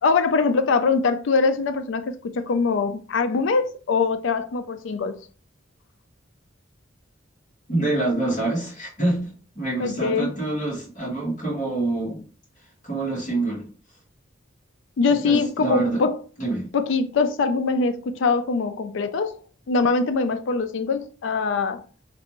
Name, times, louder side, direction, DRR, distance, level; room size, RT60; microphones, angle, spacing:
voice 1, 0.0-5.2 9.8-10.3 15.0-16.2 16.7-19.4 19.7-21.8, left 4 dB, 70° left, 0.4 m, -23 dB
voice 2, 7.7-12.2 12.8-13.6 15.1-16.0 16.4-16.7, right 2 dB, 40° left, 1.7 m, -26 dB
3.3 x 2.5 x 2.9 m
head